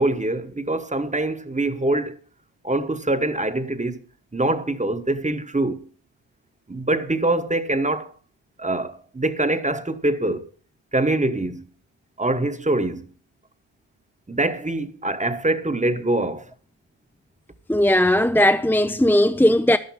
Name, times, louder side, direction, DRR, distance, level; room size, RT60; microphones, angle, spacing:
voice 1, 0.0-2.2 2.6-4.0 4.3-5.9 6.7-8.1 8.6-10.5 10.9-11.7 12.2-13.1 14.3-16.5, right 2 dB, 15° right, 1.2 m, -24 dB
voice 2, 17.7-19.8, left 1 dB, 5° left, 0.5 m, -17 dB
11.5 x 10.5 x 5.7 m
cardioid pair, 80°, 48 cm